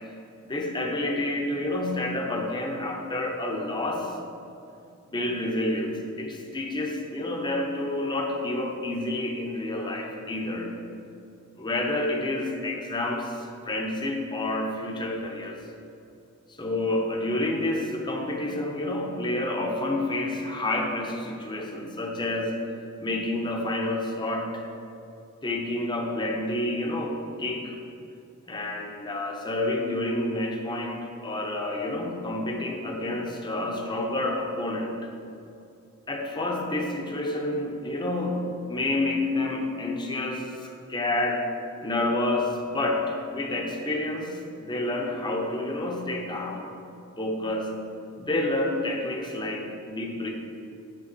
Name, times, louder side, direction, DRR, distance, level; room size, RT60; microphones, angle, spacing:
voice 1, 0.4-4.2 5.1-10.7 11.6-15.6 16.6-22.6 23.0-24.7 25.4-27.8 28.5-35.1 36.1-38.4 38.7-41.5 41.8-46.6 47.2-47.7 48.2-50.3, left 1 dB, 20° left, 0 dB, 0.8 m, -29 dB
7.6 x 3.8 x 6.7 m, 2.6 s
head